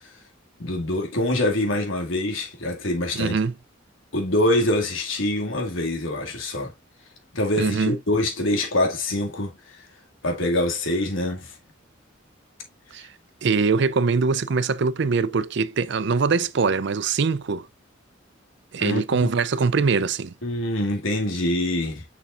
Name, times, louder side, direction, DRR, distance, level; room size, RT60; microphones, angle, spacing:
voice 1, 0.6-3.4 4.1-6.7 7.3-9.8 10.2-11.6 18.8-19.0 20.4-22.0, left 1 dB, 80° left, 2.2 m, -24 dB
voice 2, 3.2-3.5 7.6-8.0 12.9-13.1 13.4-17.7 18.7-20.3, right 4 dB, 60° right, 0.5 m, -22 dB
6.8 x 5.8 x 2.5 m
head